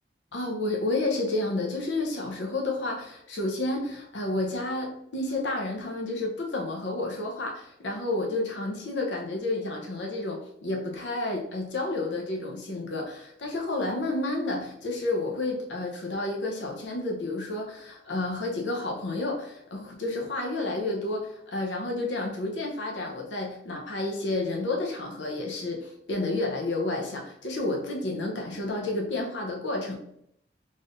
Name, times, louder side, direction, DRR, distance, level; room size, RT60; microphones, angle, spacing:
voice 1, 0.3-30.0, left 2 dB, 75° left, 0 dB, 0.8 m, -30 dB
4.1 x 3.3 x 2.5 m, 0.72 s
head